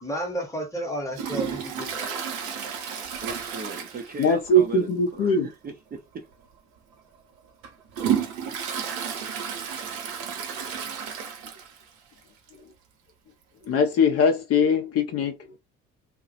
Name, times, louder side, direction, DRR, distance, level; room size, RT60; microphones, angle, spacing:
voice 1, 0.0-2.2, right 1 dB, 10° left, 0.9 m, -32 dB
Toilet flush, 1.1-4.6 4.8-4.9 5.4-5.5 6.3-6.4 7.0-11.9 12.2-12.3 12.5-12.6 13.6-13.7, right 8 dB, 65° right, 0.6 m, -32 dB
voice 2, 3.2-6.2, right 3 dB, 25° right, 0.5 m, -38 dB
voice 3, 4.2-5.5 13.7-15.4, left 2 dB, 40° left, 0.5 m, -21 dB
2.2 x 2.0 x 2.7 m
figure-of-eight pair, 45°, 39 cm